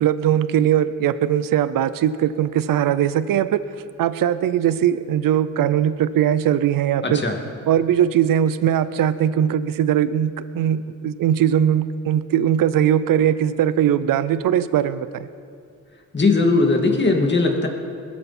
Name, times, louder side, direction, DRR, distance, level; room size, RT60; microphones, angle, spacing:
voice 1, 0.0-3.6 4.0-7.2 7.7-15.3, right 10 dB, 90° right, 14 dB, 0.6 m, -20 dB
voice 2, 7.0-7.3 16.1-17.7, left 3 dB, 35° left, 2 dB, 2.3 m, -18 dB
20.5 x 13.5 x 4.3 m, 2.3 s
cardioid pair, 85°, 33 cm